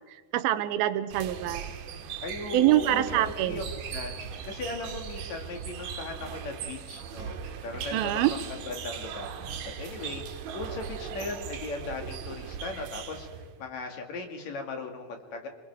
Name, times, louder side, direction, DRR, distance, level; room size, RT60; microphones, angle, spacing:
voice 1, 0.3-1.7 2.5-3.6 7.9-8.3, right 14 dB, 90° right, 12 dB, 2.6 m, -25 dB
sound 1, 1.1-13.6, right 7 dB, 70° right, 2.7 m, -39 dB
voice 2, 2.2-3.6 3.9-4.2 4.4-7.3 7.6-15.5, left 3 dB, 55° left, 3 dB, 3.3 m, -38 dB
27.5 x 22.0 x 4.7 m, 1.5 s
omnidirectional pair, 4.2 m